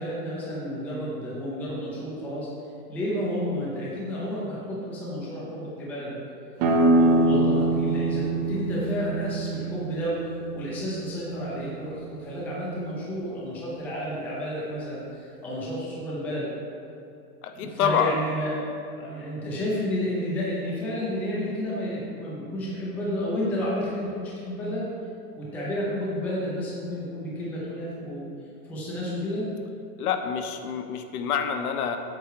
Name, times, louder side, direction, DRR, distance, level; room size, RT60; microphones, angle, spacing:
voice 1, 0.0-2.5 2.9-6.2 6.9-10.2 10.5-16.5 17.5-18.6 18.9-24.8 25.4-28.2 28.6-29.5, equal, 5° left, -7 dB, 0.5 m, -31 dB
sound 1, 6.6-12.0, right 2 dB, 25° right, 0.7 m, -24 dB
voice 2, 17.4-18.2 30.0-32.0, left 7 dB, 75° left, 7 dB, 0.9 m, -27 dB
8.0 x 5.6 x 4.7 m, 2.6 s
supercardioid pair, 175°, 45 cm